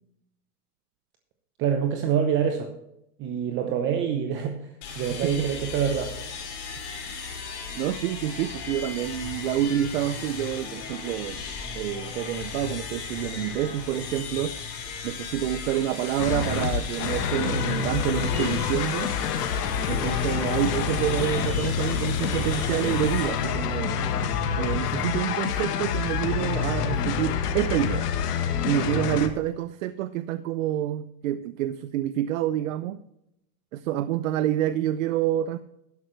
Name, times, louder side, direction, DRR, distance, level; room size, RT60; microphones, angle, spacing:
voice 1, 1.6-2.7 3.2-6.1, right 8 dB, 25° right, 5 dB, 0.8 m, -26 dB
sound 1, 4.8-24.3, left 5 dB, 50° left, 4.0 m, -36 dB
voice 2, 7.8-11.4 11.7-14.6 15.0-19.2 19.9-24.3 24.6-28.1 28.6-33.0 33.7-35.6, right 12 dB, 60° right, 13 dB, 0.6 m, -28 dB
sound 2, 16.2-29.3, left 7 dB, 80° left, 1.5 m, -27 dB
13.0 x 10.5 x 3.2 m, 0.84 s
supercardioid pair, 150°, 46 cm